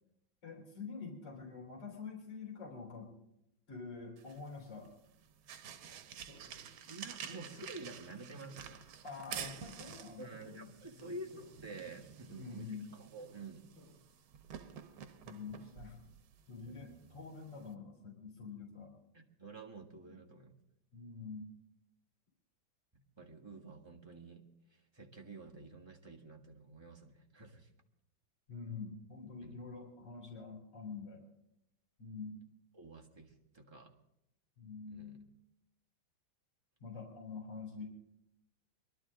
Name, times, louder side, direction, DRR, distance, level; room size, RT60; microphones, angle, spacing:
voice 1, 0.4-3.1 3.7-4.9 9.0-11.2 12.3-12.9 15.2-16.0 16.5-18.9 20.1-20.2 20.9-21.5 28.5-31.2 32.0-32.4 34.6-35.2 36.8-37.9, left 5 dB, 35° left, 0 dB, 3.9 m, -46 dB
sound 1, 4.2-17.7, right 8 dB, 90° right, 1.7 m, -50 dB
sound 2, 6.3-10.0 10.3-12.6 12.9-13.4 13.7-14.0, right 2 dB, 70° right, 8.9 m, -60 dB
voice 2, 6.9-8.8 10.2-12.7 12.9-13.6 16.7-16.8 19.1-20.5 23.2-24.4 24.9-27.7 29.4-29.6 32.7-33.9 34.9-35.2, right 2 dB, 15° right, -1 dB, 1.3 m, -49 dB
23.0 x 12.0 x 3.7 m, 0.80 s
omnidirectional pair, 2.2 m